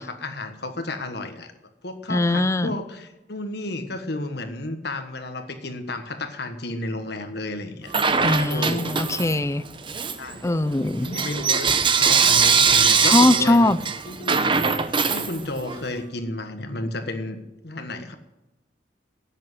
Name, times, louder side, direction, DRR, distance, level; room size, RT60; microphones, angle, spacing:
voice 1, 0.0-1.5 1.8-7.9 8.5-9.0 10.2-10.5 11.0-13.7 14.0-14.4 15.1-17.4 17.6-18.2, left 2 dB, 60° left, 8 dB, 1.4 m, -32 dB
voice 2, 2.1-2.7 8.2-9.6 10.4-11.1 13.0-13.8, left 2 dB, 15° left, 15 dB, 0.5 m, -20 dB
Bell / Coin (dropping), 7.9-9.4 9.8-15.8, right 5 dB, 30° right, 0.8 m, -21 dB
11.0 x 9.0 x 9.2 m, 0.97 s
head